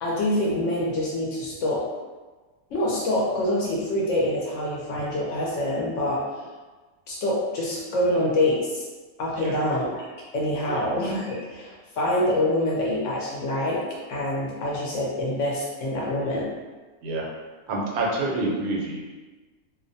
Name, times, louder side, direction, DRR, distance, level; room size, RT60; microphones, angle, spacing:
voice 1, 0.0-1.8 2.7-6.2 7.1-8.9 9.2-10.1 10.3-13.8 14.1-16.5, left 1 dB, 65° left, -4 dB, 0.8 m, -25 dB
voice 2, 17.7-19.1, right 2 dB, 85° right, -2 dB, 1.1 m, -27 dB
2.6 x 2.1 x 2.6 m, 1.3 s
omnidirectional pair, 1.5 m